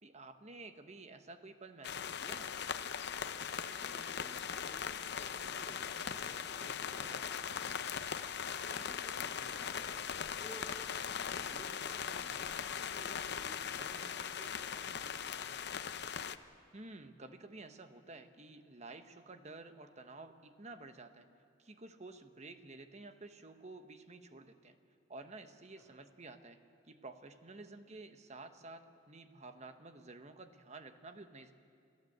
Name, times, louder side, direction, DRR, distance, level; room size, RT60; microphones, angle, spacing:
voice 1, 0.0-2.5 16.7-21.3 21.6-24.8 25.1-26.6 26.9-31.5, right 3 dB, 40° right, 8 dB, 1.1 m, -51 dB
sound 1, 1.8-16.4, left 7 dB, 65° left, 0.7 m, -40 dB
voice 2, 3.7-8.2 8.7-10.1 10.4-12.6 12.9-15.9 25.7-25.9, equal, 15° right, -7 dB, 3.7 m, -56 dB
Wind instrument woodwind instrument, 5.7-11.8, left 3 dB, 45° left, 1.3 m, -61 dB
28.0 x 16.0 x 8.0 m, 2.5 s
head